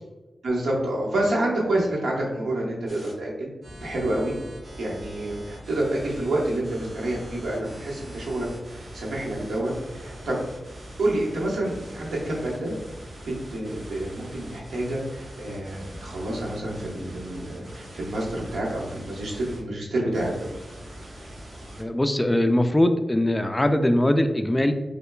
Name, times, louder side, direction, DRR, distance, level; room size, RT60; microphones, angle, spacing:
voice 1, 0.4-3.5 3.8-4.3 4.8-10.4 11.0-12.7 13.2-20.5, right 1 dB, 90° right, -3 dB, 1.0 m, -28 dB
sound 1, 2.9-3.1 3.6-19.6 20.1-21.8, right 1 dB, 60° right, 1.3 m, -42 dB
voice 2, 21.8-24.7, left 1 dB, 15° left, 7 dB, 0.3 m, -21 dB
5.3 x 2.2 x 2.2 m, 1.2 s
cardioid pair, 70°, 0 cm